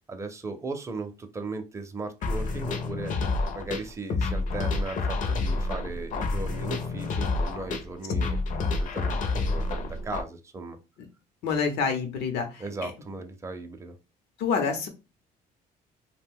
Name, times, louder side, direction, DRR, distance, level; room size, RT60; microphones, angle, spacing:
voice 1, 0.1-8.4 8.7-10.8 12.6-13.9, right 3 dB, 15° right, 6 dB, 0.5 m, -37 dB
sound 1, 2.2-10.2, left 3 dB, 50° left, 0.5 m, -29 dB
voice 2, 11.4-12.9 14.4-14.9, left 5 dB, 85° left, 5 dB, 0.7 m, -28 dB
2.5 x 2.2 x 3.5 m, 0.28 s
cardioid pair, 110°, 17 cm